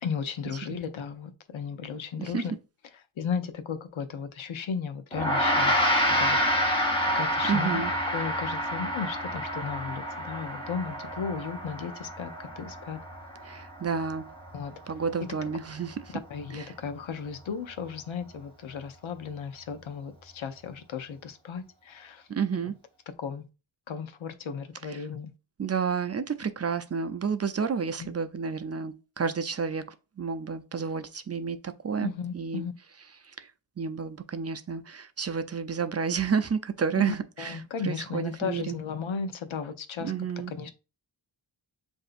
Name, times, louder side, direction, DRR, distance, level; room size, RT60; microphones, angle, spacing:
voice 1, 0.0-2.5 3.2-5.8 6.1-6.9 7.1-7.8 8.1-13.0 14.5-14.8 16.3-22.3 23.2-23.4 23.9-25.3 28.0-28.1 32.0-32.7 37.0-40.1 40.6-40.7, left 6 dB, 85° left, 0.7 m, -35 dB
Gong, 5.1-14.7, equal, 10° left, 1.4 m, -28 dB
voice 2, 7.5-7.9 13.4-14.3 14.9-16.2 16.5-16.7 22.3-22.7 24.9-25.1 25.6-29.9 30.2-32.7 33.2-33.5 33.8-38.8 40.0-40.5, right 6 dB, 35° right, 0.4 m, -30 dB
7.5 x 2.7 x 2.4 m
wide cardioid pair, 65°, 46 cm